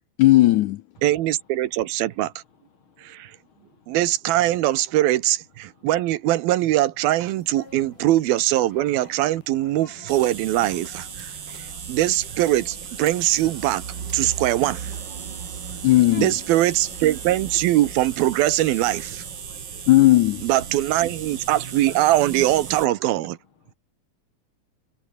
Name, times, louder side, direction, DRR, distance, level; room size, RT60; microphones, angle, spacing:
voice 1, 0.2-0.8 15.8-16.3 19.9-20.5, left 16 dB, 75° left, 1.9 m, -16 dB
voice 2, 1.0-2.3 3.0-3.3 3.9-11.3 11.9-13.8 14.1-14.9 16.2-19.2 20.4-23.4, right 14 dB, 85° right, 3.0 m, -22 dB
voice 3, 2.7-4.0 5.7-5.9 11.2-12.0 14.2-14.4 15.2-16.3 19.4-19.9 23.6-23.7, left 6 dB, 45° left, 2.2 m, -51 dB
sound 1, 7.2-18.9, left 4 dB, 60° left, 8.4 m, -52 dB
sound 2, 10.1-22.9, right 7 dB, 45° right, 1.7 m, -36 dB
sound 3, 11.2-15.4, right 3 dB, 25° right, 4.2 m, -52 dB
omnidirectional pair, 4.2 m